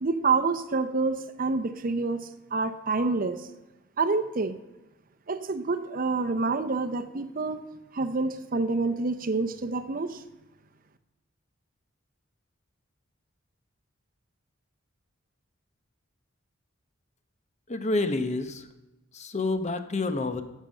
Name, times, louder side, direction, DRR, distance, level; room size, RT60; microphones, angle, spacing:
voice 1, 0.0-2.2 2.5-3.5 4.0-4.6 5.3-7.6 7.9-10.2, right 3 dB, 45° right, 9 dB, 0.7 m, -27 dB
voice 2, 17.7-18.7 19.1-20.4, left 2 dB, 35° left, 9 dB, 0.8 m, -28 dB
11.5 x 7.4 x 6.4 m, 1.0 s
head